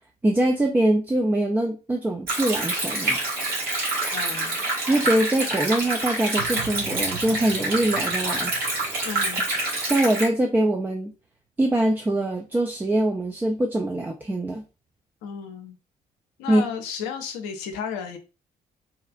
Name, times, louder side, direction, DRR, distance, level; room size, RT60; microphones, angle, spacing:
voice 1, 0.2-3.2 4.9-8.5 8.9-9.1 9.8-11.1 11.6-14.6 16.5-16.6, right 1 dB, 10° right, 0.3 m, -23 dB
Stream, 2.3-10.3, right 2 dB, 50° right, 1.2 m, -27 dB
voice 2, 4.1-4.6 9.0-9.4 15.2-15.8 16.4-18.2, left 7 dB, 65° left, 0.5 m, -33 dB
sound 1, 6.4-10.2, right 7 dB, 75° right, 0.7 m, -41 dB
2.8 x 2.3 x 2.3 m
figure-of-eight pair, 45°, 19 cm